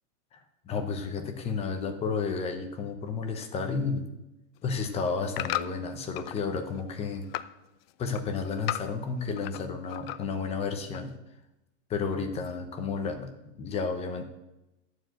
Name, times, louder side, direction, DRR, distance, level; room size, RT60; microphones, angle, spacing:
voice 1, 0.3-4.1 4.6-7.3 8.0-11.1 11.9-14.3, left 5 dB, 15° left, 6 dB, 0.7 m, -32 dB
sound 1, 4.6-6.4 6.8-7.6 7.9-9.6 9.9-10.5 10.9-11.0, left 14 dB, 50° left, 0.4 m, -36 dB
11.0 x 4.8 x 7.8 m, 0.95 s
supercardioid pair, 165°, 39 cm